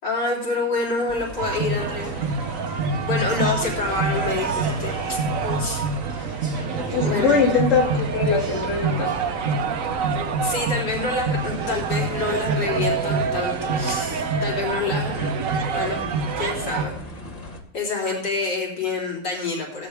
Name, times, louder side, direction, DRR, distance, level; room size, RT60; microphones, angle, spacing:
voice 1, 0.0-2.1 3.0-6.4 7.0-7.4 10.4-15.3 15.7-16.0 16.4-16.9 17.7-19.9, left 3 dB, 85° left, -4 dB, 4.1 m, -27 dB
Speech / Chatter, 0.5-9.9, equal, 40° right, 4.4 m, -41 dB
sound 1, 1.1-17.6, left 1 dB, 25° left, 1.3 m, -38 dB
sound 2, 1.4-16.9, right 5 dB, 60° right, 1.1 m, -26 dB
voice 2, 6.9-9.1, left 5 dB, 45° left, -4 dB, 2.5 m, -21 dB
17.5 x 9.6 x 3.5 m, 0.62 s
omnidirectional pair, 1.9 m